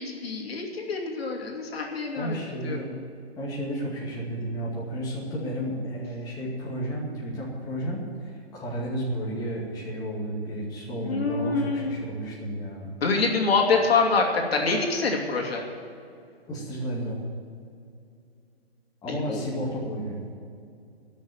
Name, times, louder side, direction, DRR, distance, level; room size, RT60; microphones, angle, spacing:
voice 1, 0.0-2.4 2.6-2.8 11.1-11.9 13.0-15.6 19.1-19.4, left 4 dB, 70° left, 1 dB, 2.8 m, -25 dB
voice 2, 2.2-2.9 3.4-12.9 16.5-17.2 19.0-20.3, right 1 dB, 10° left, -5 dB, 2.2 m, -32 dB
14.5 x 6.6 x 9.4 m, 2.4 s
hypercardioid pair, 160°, 32 cm